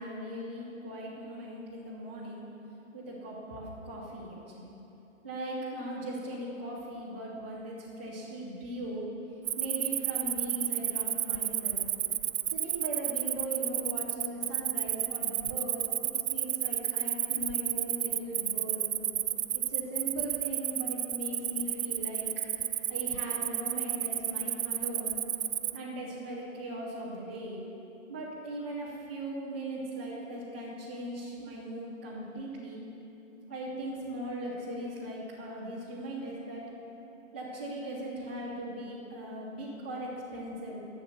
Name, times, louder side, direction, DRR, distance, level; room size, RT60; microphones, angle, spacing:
voice 1, 0.0-2.4 2.9-4.7 5.2-9.1 9.6-11.8 12.5-18.9 19.5-22.3 22.9-25.1 25.7-27.6 28.1-32.8 33.5-36.6 37.3-40.8, right 1 dB, 10° right, -10 dB, 0.4 m, -39 dB
Cricket, 9.4-25.8, right 11 dB, 75° right, 0.5 m, -31 dB
12.0 x 7.1 x 7.1 m, 2.9 s
hypercardioid pair, 155°, 41 cm